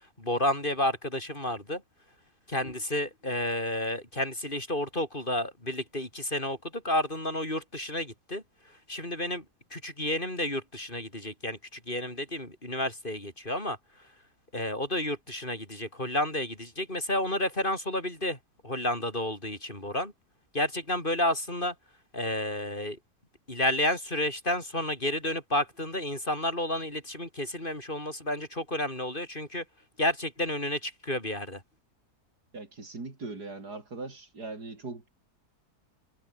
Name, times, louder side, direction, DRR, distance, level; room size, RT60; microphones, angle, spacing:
voice 1, 0.2-1.8 2.5-9.4 9.7-14.1 14.5-18.4 18.6-20.1 20.5-21.7 22.1-23.0 23.5-29.6 30.0-31.6, left 1 dB, 30° left, 6.2 m, -31 dB
voice 2, 32.5-35.1, right 3 dB, 75° right, 4.9 m, -40 dB
omnidirectional pair, 1.7 m